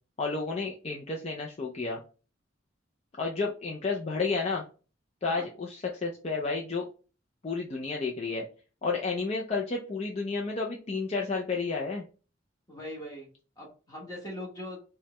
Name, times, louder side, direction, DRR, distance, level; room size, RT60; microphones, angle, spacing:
voice 1, 0.2-2.0 3.2-4.6 5.2-6.9 7.4-8.5 8.8-12.0, left 4 dB, 35° left, -1 dB, 0.4 m, -31 dB
voice 2, 12.7-13.3 13.6-14.8, left 1 dB, 20° left, -2 dB, 1.2 m, -40 dB
4.5 x 2.2 x 3.0 m, 0.36 s
head